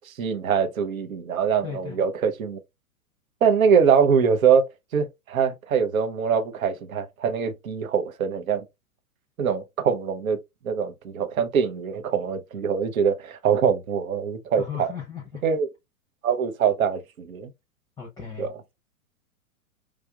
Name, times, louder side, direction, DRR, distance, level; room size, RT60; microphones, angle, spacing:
voice 1, 0.1-2.6 3.4-8.6 9.4-10.4 10.6-14.9 15.4-15.7 16.2-17.5 18.4-18.5, right 6 dB, 75° right, 0.8 m, -23 dB
voice 2, 1.6-2.0 14.6-15.4 18.0-18.5, left 7 dB, 10° left, 0.6 m, -36 dB
4.8 x 2.5 x 2.3 m
figure-of-eight pair, 105°, 42 cm